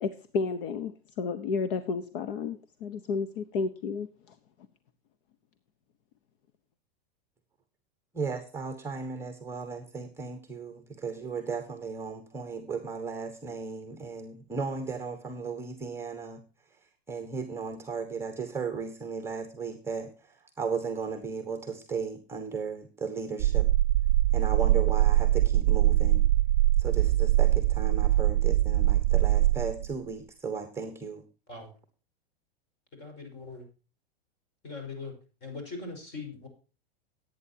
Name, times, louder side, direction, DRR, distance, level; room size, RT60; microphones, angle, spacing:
voice 1, 0.0-4.4, left 4 dB, 60° left, 1.1 m, -32 dB
voice 2, 8.1-16.4 16.7-16.8 17.1-23.7 24.3-26.2 26.8-31.3, right 5 dB, 10° right, 1.2 m, -35 dB
sound 1, 23.4-29.9, right 15 dB, 80° right, 0.5 m, -23 dB
voice 3, 32.9-33.7 34.6-35.1 35.4-36.5, left 3 dB, 35° left, 5.6 m, -40 dB
18.5 x 9.1 x 2.8 m
supercardioid pair, 150°, 31 cm